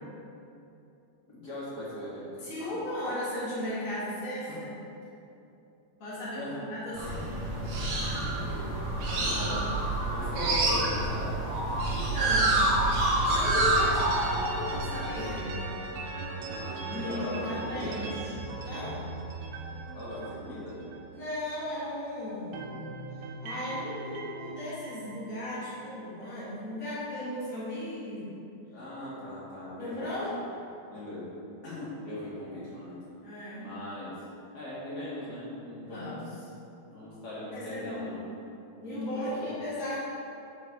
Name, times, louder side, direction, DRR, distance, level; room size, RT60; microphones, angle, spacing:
voice 1, 1.3-2.7 4.5-4.6 6.3-6.6 8.0-9.7 10.1-11.4 11.8-11.9 16.4-18.1 19.9-20.8 28.7-30.2 30.9-31.3 31.6-33.0 33.6-34.2 34.5-36.2 36.9-38.3 38.8-39.5, left 1 dB, 40° left, -9 dB, 1.4 m, -40 dB
voice 2, 2.4-4.7 6.0-7.2 9.3-9.6 11.9-12.8 13.2-15.6 16.9-18.3 18.6-19.0 21.1-22.6 23.4-28.3 29.8-30.4 33.2-33.7 35.9-36.3 37.5-38.1 38.8-40.0, left 1 dB, 80° left, -9 dB, 0.7 m, -36 dB
sound 1, 7.0-16.0, right 2 dB, 60° right, 2.1 m, -28 dB
sound 2, 13.3-22.0 22.3-26.4, right 3 dB, 85° right, 2.7 m, -40 dB
8.0 x 4.9 x 4.7 m, 2.7 s
omnidirectional pair, 4.6 m